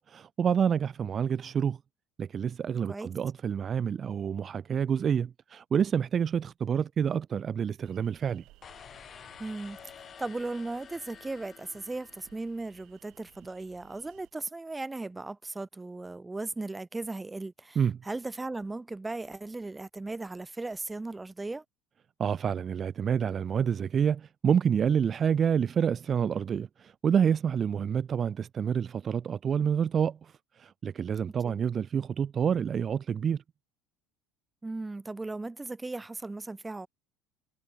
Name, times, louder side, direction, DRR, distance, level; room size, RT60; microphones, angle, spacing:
voice 1, 0.0-1.8 2.2-8.4 17.8-18.0 22.2-33.4, right 7 dB, 35° right, 0.4 m, -28 dB
sound 1, 7.8-14.3, right 18 dB, 60° right, 6.0 m, -61 dB
sound 2, 8.6-12.8, left 8 dB, 35° left, 1.0 m, -50 dB
voice 2, 9.4-21.6 31.4-31.6 34.6-36.9, right 2 dB, 10° right, 0.8 m, -37 dB
supercardioid pair, 120°, 0 cm